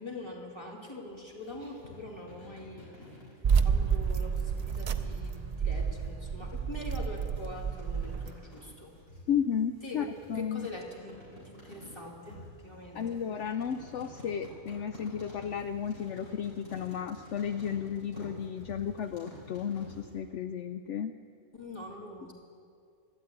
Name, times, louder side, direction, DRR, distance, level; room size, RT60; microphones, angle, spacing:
voice 1, 0.0-2.9 3.6-9.0 9.8-10.1 10.3-13.2 21.5-22.3, left 2 dB, 20° left, -2 dB, 2.4 m, -44 dB
sound 1, 1.0-20.1, left 1 dB, 85° left, 5.7 m, -51 dB
sound 2, 3.4-8.3, right 6 dB, 70° right, 0.3 m, -30 dB
voice 2, 9.3-10.7 12.9-21.1, left 8 dB, 70° left, 8 dB, 0.8 m, -33 dB
13.0 x 12.5 x 8.8 m, 2.3 s
omnidirectional pair, 1.4 m